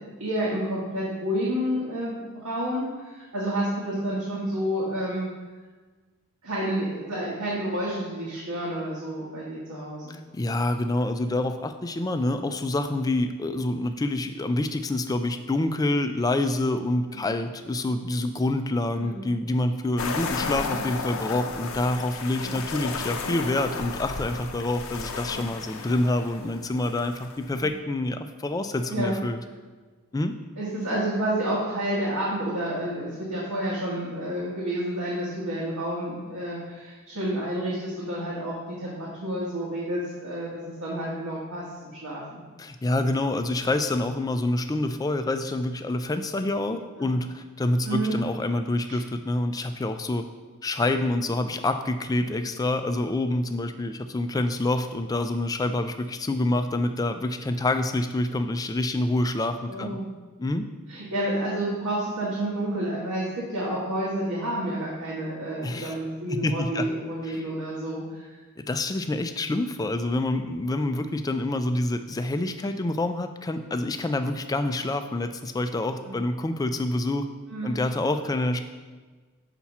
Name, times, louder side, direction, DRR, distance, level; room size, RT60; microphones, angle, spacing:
voice 1, 0.0-2.2 2.4-5.3 6.4-10.2 17.1-17.3 18.9-19.2 22.4-22.5 27.5-27.7 28.9-29.1 30.6-42.4 47.0-47.1 47.8-48.2 48.9-49.0 52.2-52.4 59.7-60.1 60.9-68.3 76.0-76.2 77.5-77.7, right 1 dB, 85° right, -6 dB, 1.4 m, -30 dB
voice 2, 10.1-29.4 30.1-30.4 42.6-50.2 50.6-60.0 60.4-60.7 65.6-65.9 66.3-66.9 67.2-67.5 68.6-77.3 77.6-78.6, left 2 dB, 15° left, 8 dB, 0.3 m, -27 dB
sound 1, 20.0-27.7, left 4 dB, 65° left, 0.5 m, -34 dB
5.8 x 4.2 x 5.9 m, 1.4 s
head